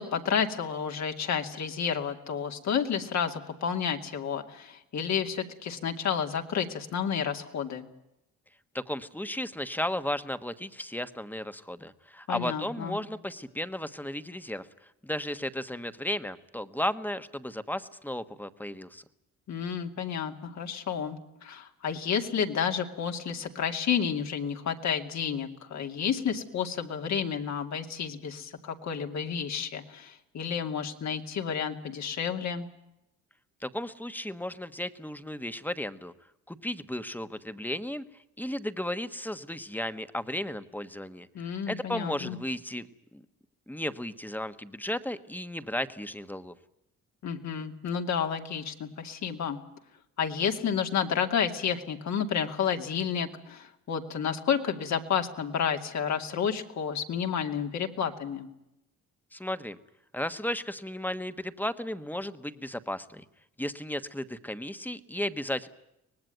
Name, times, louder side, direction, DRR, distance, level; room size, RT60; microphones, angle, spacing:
voice 1, 0.0-7.9 12.3-13.0 19.5-32.7 41.3-42.4 47.2-49.6 50.2-58.5, left 7 dB, 65° left, 4 dB, 2.6 m, -31 dB
voice 2, 8.7-14.7 15.0-19.0 33.6-36.1 36.5-38.0 38.4-42.9 43.1-43.2 43.7-46.5 59.3-59.8 60.1-63.2 63.6-65.7, left 1 dB, 5° left, 11 dB, 1.3 m, -34 dB
24.5 x 19.5 x 9.3 m, 0.86 s
cardioid pair, 90°, 30 cm